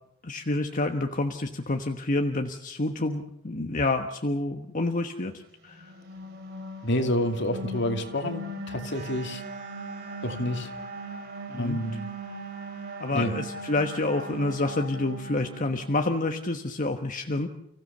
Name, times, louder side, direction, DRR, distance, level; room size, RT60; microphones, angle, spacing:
voice 1, 0.2-5.9 11.5-11.8 13.0-17.5, left 2 dB, 40° left, 4 dB, 1.3 m, -28 dB
sound 1, 5.7-16.2, right 2 dB, 55° right, 2.8 m, -39 dB
voice 2, 6.8-9.4 10.2-10.7 11.5-12.1 13.1-13.3, left 1 dB, 60° left, 6 dB, 2.5 m, -28 dB
sound 2, 8.9-14.7, right 4 dB, 40° right, 3.8 m, -49 dB
30.0 x 16.5 x 6.9 m, 0.78 s
head